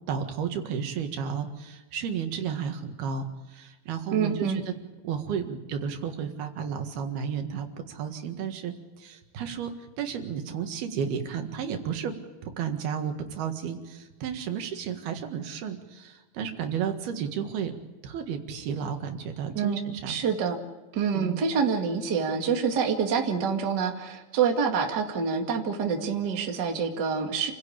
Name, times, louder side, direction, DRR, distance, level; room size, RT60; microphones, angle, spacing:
voice 1, 0.1-4.7 5.0-9.7 10.0-12.2 12.4-17.7 18.0-20.2 21.1-21.5, right 7 dB, 85° right, 5 dB, 3.7 m, -32 dB
voice 2, 4.1-4.6 19.6-19.8 20.1-20.6 20.9-27.5, right 6 dB, 35° right, 3 dB, 2.1 m, -26 dB
28.5 x 16.5 x 8.7 m, 1.2 s
omnidirectional pair, 4.4 m